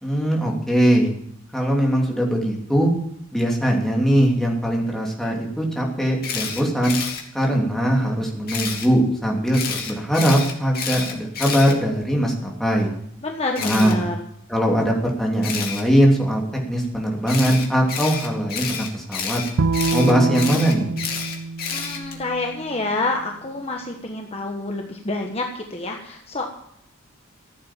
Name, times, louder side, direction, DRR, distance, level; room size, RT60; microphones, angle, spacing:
voice 1, 0.0-1.1 1.5-2.9 3.3-7.0 7.3-12.9 13.6-14.0 14.5-19.4 19.9-20.9, equal, ahead, -2 dB, 3.0 m, -21 dB
Camera, 6.2-7.2 8.5-8.9 9.5-12.3 13.5-13.9 15.4-15.8 17.3-22.2, left 6 dB, 50° left, 2.6 m, -29 dB
voice 2, 13.2-14.2 21.7-26.5, left 2 dB, 30° left, 2 dB, 1.3 m, -28 dB
Bowed string instrument, 19.6-22.9, right 3 dB, 75° right, 0.5 m, -26 dB
15.0 x 8.6 x 7.5 m, 0.74 s
head